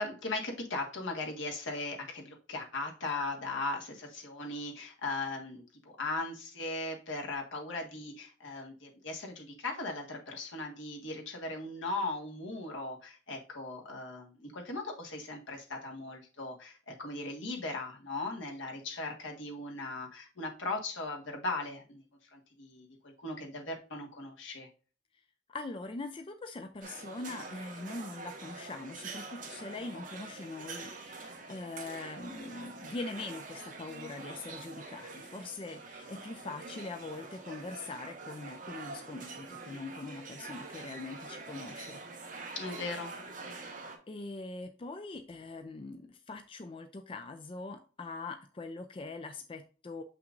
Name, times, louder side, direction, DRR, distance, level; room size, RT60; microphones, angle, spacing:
voice 1, 0.0-22.0 22.3-24.7 42.5-43.1 43.4-43.6, left 2 dB, 75° left, 1.7 m, -38 dB
voice 2, 25.5-42.0 42.3-42.6 44.1-50.0, left 3 dB, 25° left, 0.4 m, -42 dB
sound 1, 26.8-44.0, right 3 dB, 45° right, 1.5 m, -45 dB
6.7 x 5.8 x 2.6 m
head